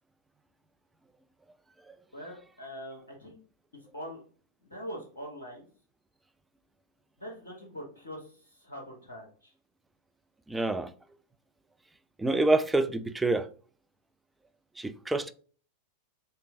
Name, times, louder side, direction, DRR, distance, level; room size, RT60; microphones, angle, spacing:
voice 1, 2.1-3.4 3.9-4.2 4.6-5.7 7.2-9.5, equal, 75° left, 0.9 m, -43 dB
voice 2, 10.5-10.9 12.2-13.5 14.8-15.3, right 2 dB, 5° right, 0.3 m, -27 dB
3.3 x 3.0 x 3.6 m
figure-of-eight pair, 90°, 0 cm